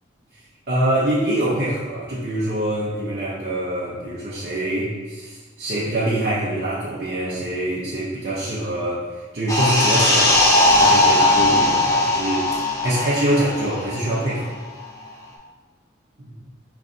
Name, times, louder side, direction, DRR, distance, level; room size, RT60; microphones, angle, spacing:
voice 1, 0.7-14.5 16.2-16.3, right 1 dB, 50° right, -9 dB, 0.7 m, -24 dB
sound 1, 9.5-14.6 14.8-15.0, left 2 dB, 15° left, 0.5 m, -18 dB
4.9 x 3.1 x 2.6 m, 1.4 s
head